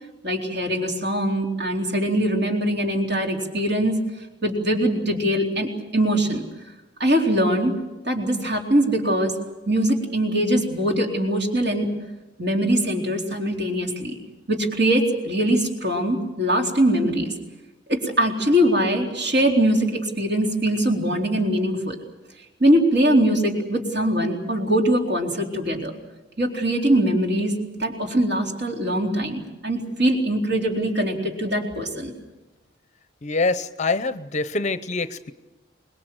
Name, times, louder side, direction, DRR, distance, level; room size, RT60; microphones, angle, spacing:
voice 1, 0.2-4.0 4.4-6.4 7.0-7.7 8.1-9.4 9.7-11.9 12.4-14.2 14.5-17.3 17.9-22.0 22.6-25.9 26.4-32.1, right 1 dB, 55° right, 1 dB, 4.0 m, -22 dB
voice 2, 33.2-35.3, left 3 dB, 35° left, 12 dB, 0.7 m, -25 dB
25.0 x 21.0 x 7.9 m, 1.1 s
head